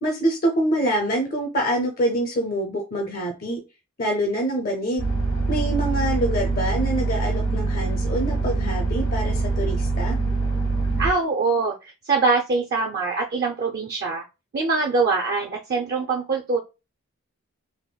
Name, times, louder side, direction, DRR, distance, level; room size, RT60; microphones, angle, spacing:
voice 1, 0.0-3.6 4.0-5.1 5.5-10.2, right 1 dB, 40° left, 2 dB, 0.6 m, -25 dB
Parking car with running engine, 5.0-11.1, right 3 dB, 75° left, 1.1 m, -24 dB
voice 2, 11.0-14.2 14.5-16.6, right 4 dB, 45° right, 2 dB, 0.4 m, -23 dB
3.4 x 2.9 x 2.2 m, 0.27 s
head